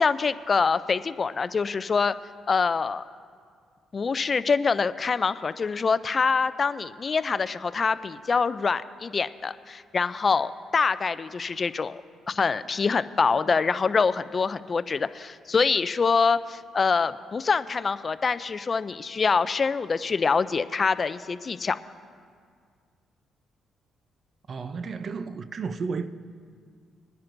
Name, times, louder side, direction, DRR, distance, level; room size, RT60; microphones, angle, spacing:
voice 1, 0.0-2.1 2.5-3.0 3.9-12.0 12.3-21.8, left 5 dB, 35° left, 0.3 m, -25 dB
voice 2, 24.5-26.1, right 5 dB, 50° right, 0.5 m, -32 dB
22.5 x 10.0 x 2.6 m
cardioid pair, 90°, 0 cm